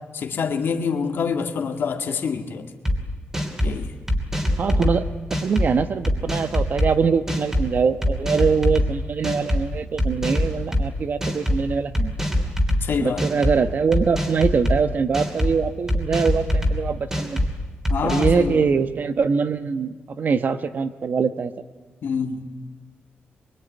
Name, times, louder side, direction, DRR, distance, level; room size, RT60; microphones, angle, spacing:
voice 1, 0.1-2.7 3.6-3.9 12.8-13.2 17.9-18.7 22.0-22.4, left 6 dB, 70° left, 5 dB, 2.2 m, -26 dB
sound 1, 2.8-3.0 3.3-3.7 4.1-4.9 5.3-5.7 6.0-6.9 7.3-7.6 8.0-8.9 9.2-9.6 10.0-10.8 11.2-11.6 11.9-12.8 13.2-13.5 13.9-14.8 15.1-15.5 15.9-16.7 17.1-17.5 17.8-18.4, left 1 dB, 10° right, 3.1 m, -22 dB
voice 2, 4.6-5.1 5.4-12.1 13.0-17.4 18.0-21.5, right 5 dB, 50° right, 10 dB, 1.1 m, -23 dB
24.0 x 23.5 x 9.4 m, 1.3 s
wide cardioid pair, 170°, 4 cm